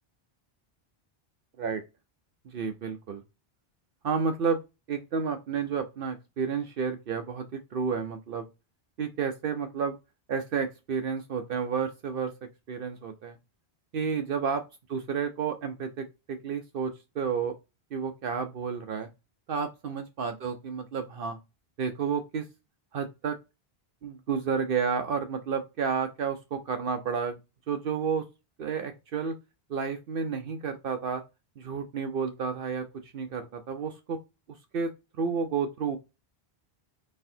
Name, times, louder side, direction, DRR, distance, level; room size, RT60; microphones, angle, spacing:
voice 1, 2.5-3.2 4.0-4.6 4.9-8.4 9.0-10.0 10.3-12.3 12.7-13.4 13.9-14.6 14.9-17.5 17.9-19.1 19.5-21.4 21.8-22.5 22.9-23.4 24.0-27.4 27.7-28.2 28.6-29.3 29.7-31.2 31.6-32.8 33.1-34.2 34.7-34.9 35.2-36.0, right 6 dB, 65° right, 0.8 m, -31 dB
4.2 x 3.3 x 2.6 m
omnidirectional pair, 1.0 m